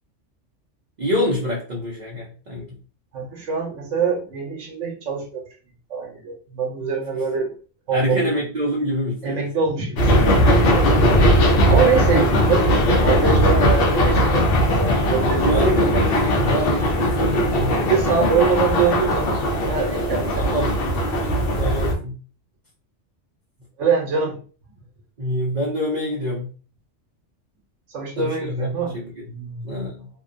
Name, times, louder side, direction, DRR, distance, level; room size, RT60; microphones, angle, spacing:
voice 1, 1.0-2.7 7.9-9.5 15.4-17.7 20.5-20.9 21.6-22.1 25.2-26.5 28.2-29.2 29.6-30.1, left 1 dB, 50° right, -3 dB, 0.6 m, -26 dB
voice 2, 3.1-5.4 5.9-7.5 7.9-8.3 9.2-10.9 11.5-12.7 12.9-15.7 17.8-19.4 19.7-20.7 23.8-24.4 27.9-28.9 29.2-29.7, right 5 dB, 85° right, 0 dB, 1.0 m, -24 dB
sound 1, 10.0-21.9, equal, 60° left, 0.7 m, -19 dB
2.6 x 2.2 x 2.5 m, 0.38 s
omnidirectional pair, 1.2 m